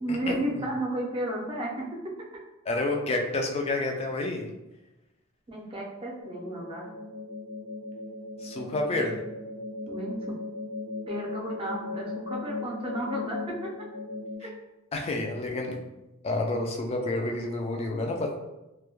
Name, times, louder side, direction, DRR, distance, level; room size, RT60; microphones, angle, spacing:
voice 1, 0.0-1.7 5.5-6.9 9.9-10.1 11.1-13.5 14.4-14.5, right 1 dB, 25° right, -3 dB, 0.5 m, -33 dB
voice 2, 2.7-4.4 8.4-9.1 14.9-15.8 16.2-18.4, left 2 dB, 30° left, 2 dB, 0.3 m, -29 dB
sound 1, 6.2-14.3, left 3 dB, 60° left, 0.7 m, -37 dB
2.2 x 2.1 x 2.9 m, 0.98 s
head